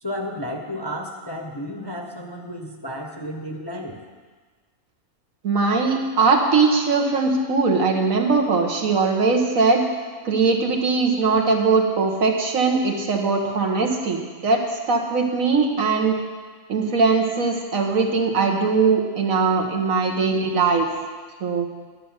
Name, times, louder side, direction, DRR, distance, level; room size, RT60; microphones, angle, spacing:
voice 1, 0.0-4.0, equal, 20° left, 1 dB, 0.8 m, -32 dB
voice 2, 5.4-9.8 10.2-16.2 16.7-20.9 21.4-21.7, right 4 dB, 75° right, 1 dB, 1.7 m, -20 dB
11.0 x 6.5 x 8.9 m, 1.5 s
omnidirectional pair, 1.4 m